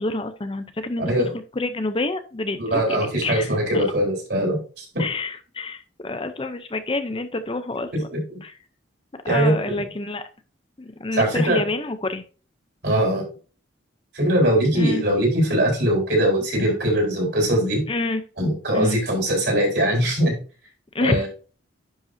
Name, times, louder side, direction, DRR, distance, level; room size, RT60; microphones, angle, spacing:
voice 1, 0.0-1.1 1.6-3.8 5.0-8.1 8.4-8.5 9.2-10.2 10.8-12.2 14.7-15.0 17.9-18.2 18.7-19.0 20.9-21.3, left 2 dB, 25° left, 10 dB, 0.6 m, -28 dB
voice 2, 2.6-5.1 7.9-8.4 9.3-9.5 11.1-11.6 12.8-13.2 14.1-17.8 18.4-20.3 21.0-21.3, right 1 dB, 60° right, 0 dB, 4.1 m, -21 dB
10.5 x 5.4 x 2.7 m, 0.36 s
head